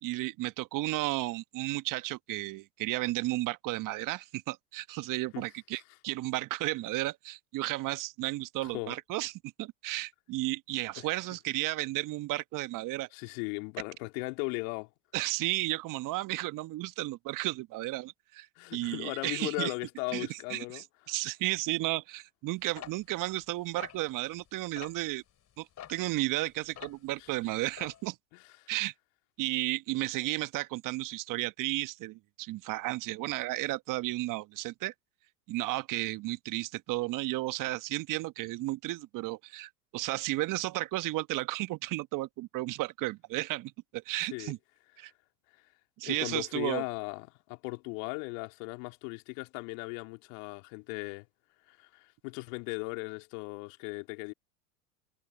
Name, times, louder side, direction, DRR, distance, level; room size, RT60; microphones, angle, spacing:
voice 1, 0.0-9.3 9.6-13.1 15.1-18.5 18.7-19.7 20.1-25.2 25.6-28.2 28.7-28.9 29.4-34.9 35.5-44.6 45.0-45.1 46.0-46.8, right 18 dB, 45° right, 1.3 m, -33 dB
voice 2, 8.6-9.0 11.0-11.1 13.1-14.9 18.6-20.8 28.3-28.7 44.2-44.5 46.0-51.3 51.7-54.3, left 33 dB, 60° left, 2.9 m, -37 dB
sound 1, 22.8-24.5 24.8-25.0 25.8-27.2 27.4-28.1, left 10 dB, 35° left, 4.6 m, -47 dB
hypercardioid pair, 85°, 45 cm